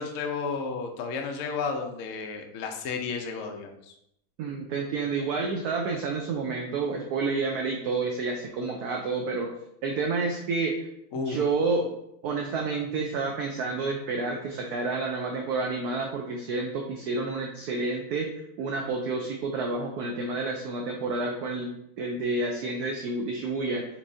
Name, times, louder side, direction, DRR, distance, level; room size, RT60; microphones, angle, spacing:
voice 1, 0.0-3.9 11.1-11.4, left 5 dB, 75° left, 4 dB, 0.7 m, -32 dB
voice 2, 4.4-9.5 9.8-10.9 11.1-11.9 12.2-18.3 18.6-21.7 22.0-23.9, right 3 dB, 70° right, 1 dB, 0.9 m, -29 dB
5.9 x 3.1 x 2.7 m, 0.77 s
omnidirectional pair, 2.1 m